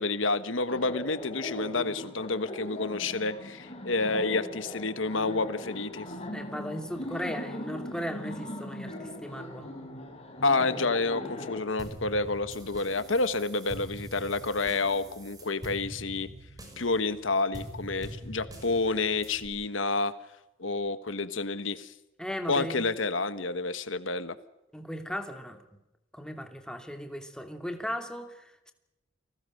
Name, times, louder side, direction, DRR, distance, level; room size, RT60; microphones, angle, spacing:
voice 1, 0.0-6.1 10.4-16.3 16.8-20.1 20.6-21.9 22.5-24.4, left 3 dB, 70° left, 13 dB, 1.3 m, -29 dB
Laughter, 0.7-11.6, left 1 dB, 30° left, 5.6 m, -39 dB
voice 2, 6.3-9.7 22.2-22.8 24.7-25.8 26.1-28.7, equal, 5° left, 6 dB, 2.6 m, -37 dB
sound 1, 11.8-19.5, right 1 dB, 20° right, 5.9 m, -44 dB
29.0 x 19.5 x 6.5 m, 0.93 s
head